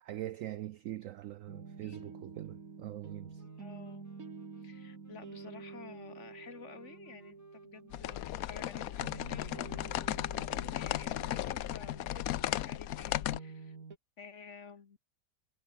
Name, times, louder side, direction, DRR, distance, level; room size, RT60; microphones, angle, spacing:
voice 1, 0.0-3.4, right 13 dB, 70° right, 0.7 m, -42 dB
sound 1, 1.5-14.0, right 5 dB, 50° right, 2.7 m, -49 dB
sound 2, 3.4-13.7, left 1 dB, 10° left, 3.7 m, -65 dB
voice 2, 3.6-4.0 4.6-13.8 14.2-15.0, left 5 dB, 45° left, 1.5 m, -52 dB
sound 3, 7.9-13.4, left 13 dB, 65° left, 1.0 m, -35 dB
omnidirectional pair, 1.8 m